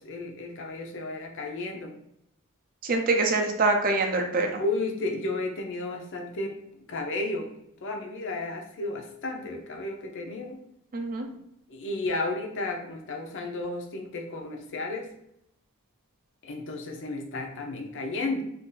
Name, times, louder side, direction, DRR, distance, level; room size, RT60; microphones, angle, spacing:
voice 1, 0.0-1.9 4.6-7.5 7.8-10.6 11.7-15.1 16.4-18.4, left 2 dB, 60° left, 2 dB, 0.6 m, -33 dB
voice 2, 2.8-4.6 10.9-11.3, right 3 dB, 40° right, 4 dB, 0.4 m, -25 dB
2.6 x 2.4 x 3.8 m, 0.78 s
head